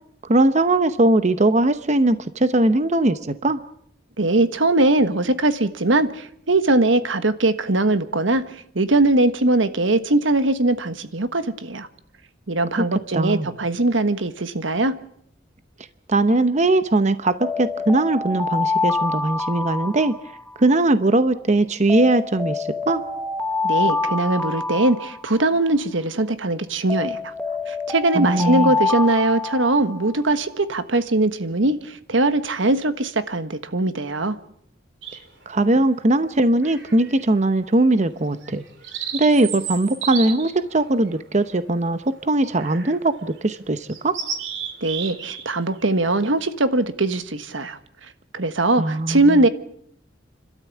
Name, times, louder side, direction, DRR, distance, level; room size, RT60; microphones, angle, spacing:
voice 1, 0.2-3.6 13.1-13.5 16.1-20.1 20.6-23.0 28.1-28.7 35.5-38.6 39.1-44.2 48.8-49.4, right 2 dB, 40° right, 12 dB, 0.8 m, -20 dB
voice 2, 4.2-11.9 12.5-14.9 23.6-27.3 27.7-34.4 44.8-47.8 48.3-49.5, right 2 dB, 85° right, 11 dB, 1.4 m, -21 dB
Alarm, 17.4-20.7 21.9-25.7 26.9-30.2, left 3 dB, 5° left, 1.0 m, -26 dB
sound 1, 35.0-35.5 36.6-37.3 37.7-37.9 38.4-41.9 42.6-43.0 43.4-43.5 43.9-45.4 45.7-46.0, right 7 dB, 65° right, 3.5 m, -33 dB
29.5 x 13.0 x 8.4 m, 0.69 s
head